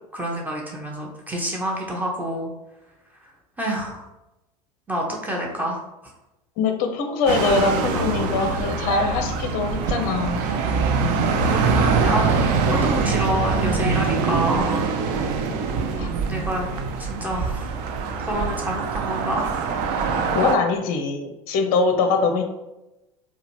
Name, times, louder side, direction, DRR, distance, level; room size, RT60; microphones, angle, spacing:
voice 1, 0.1-2.5 3.2-3.3 3.6-4.1 4.9-5.8 7.5-8.2 11.2-14.9 16.3-16.7 17.1-17.7 18.3-19.5, right 1 dB, 10° right, -1 dB, 0.8 m, -28 dB
voice 2, 6.6-10.4 16.0-16.1 20.3-22.4, left 4 dB, 45° left, 5 dB, 0.6 m, -22 dB
sound 1, 7.3-20.6, right 4 dB, 45° right, 0.5 m, -23 dB
4.7 x 2.2 x 3.1 m, 0.96 s
figure-of-eight pair, 75°, 20 cm